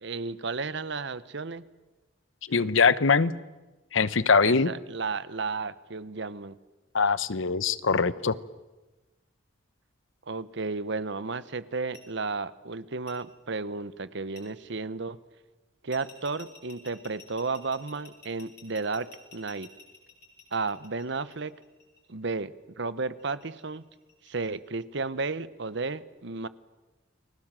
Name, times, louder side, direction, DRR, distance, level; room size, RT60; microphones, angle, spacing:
voice 1, 0.0-1.7 4.4-6.6 10.3-15.2 15.8-19.7 20.5-21.5 22.1-23.8 24.2-26.5, right 4 dB, 65° right, 16 dB, 1.0 m, -33 dB
voice 2, 2.5-3.3 3.9-4.7 6.9-8.3, left 5 dB, 85° left, 17 dB, 0.9 m, -22 dB
sound 1, 11.9-12.0 13.1-13.2 14.4-14.5 15.9-22.0 23.2-24.5, left 5 dB, 60° left, 6.2 m, -51 dB
30.0 x 21.5 x 7.6 m, 1.1 s
head